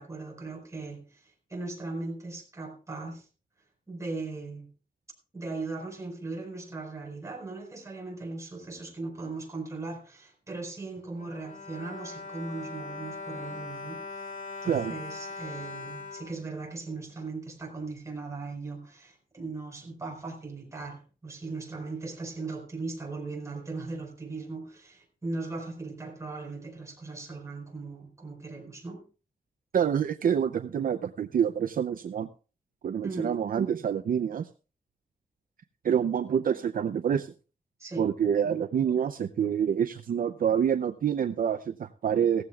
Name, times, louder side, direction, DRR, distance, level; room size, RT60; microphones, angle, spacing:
voice 1, 0.0-3.3 3.9-4.7 5.3-29.0 33.0-33.4 37.8-38.1, right 3 dB, 20° right, 1 dB, 4.8 m, -38 dB
Bowed string instrument, 11.0-17.2 17.9-18.0 18.3-18.4, left 3 dB, 60° left, 2.7 m, -41 dB
voice 2, 29.7-32.3 32.8-34.5 35.8-37.3 38.0-42.4, right 8 dB, 65° right, 9 dB, 0.6 m, -27 dB
17.0 x 14.5 x 2.4 m, 0.35 s
wide cardioid pair, 150°, 15 cm